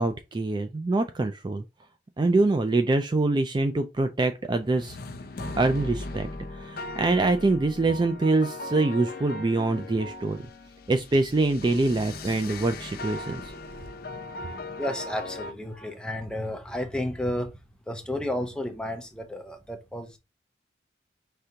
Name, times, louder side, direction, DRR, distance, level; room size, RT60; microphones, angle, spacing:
voice 1, 0.0-1.6 2.2-5.0 5.6-10.4 10.9-13.5, right 2 dB, 25° right, 0.3 m, -25 dB
sound 1, 4.4-15.5, left 2 dB, 55° left, 0.7 m, -38 dB
voice 2, 14.8-17.5 17.9-20.2, left 1 dB, 5° left, 0.7 m, -32 dB
5.0 x 3.4 x 2.8 m
head